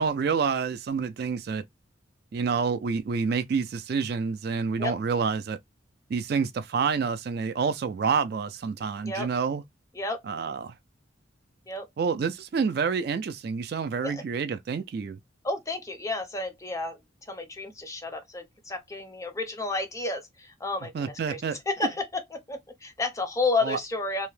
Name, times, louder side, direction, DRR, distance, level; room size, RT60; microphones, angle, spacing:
voice 1, 0.0-1.6 2.3-5.6 6.1-9.6 10.3-10.7 12.0-15.2 20.9-21.6 23.6-23.8, right 5 dB, 50° right, 0.3 m, -28 dB
voice 2, 15.4-24.3, left 3 dB, 15° left, 0.5 m, -31 dB
2.7 x 2.1 x 3.1 m
head